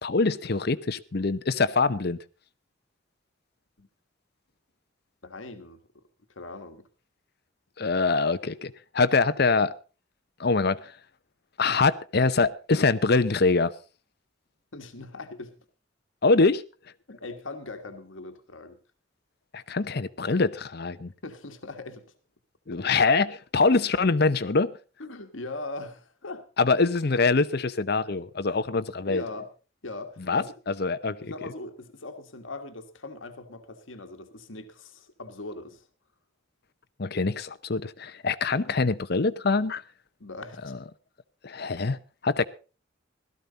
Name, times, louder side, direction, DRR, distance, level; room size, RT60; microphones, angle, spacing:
voice 1, 0.0-2.2 7.8-9.7 10.4-10.9 11.6-13.7 16.2-16.6 19.5-21.1 22.7-24.7 26.6-29.2 30.3-30.4 30.8-31.2 37.0-39.8 40.6-40.8 41.4-42.4, left 3 dB, 55° left, 0.7 m, -24 dB
voice 2, 5.2-6.0 6.3-6.9 14.7-15.6 17.1-18.8 21.2-22.1 22.7-22.9 25.0-26.5 28.5-28.6 29.1-29.5 29.8-30.6 31.2-35.9 40.2-40.8, left 2 dB, 75° left, 1.5 m, -40 dB
16.5 x 13.5 x 4.0 m
head